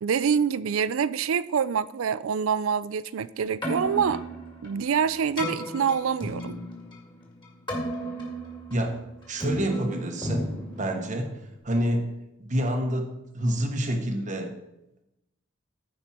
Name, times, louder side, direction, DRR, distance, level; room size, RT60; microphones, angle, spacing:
voice 1, 0.0-4.2 4.6-6.6, right 7 dB, 85° right, 0.4 m, -26 dB
Keyboard (musical), 3.4-11.6, equal, 25° left, 2.4 m, -35 dB
voice 2, 8.7-12.1 12.4-14.6, equal, 40° right, 1.2 m, -28 dB
14.5 x 5.3 x 4.4 m
head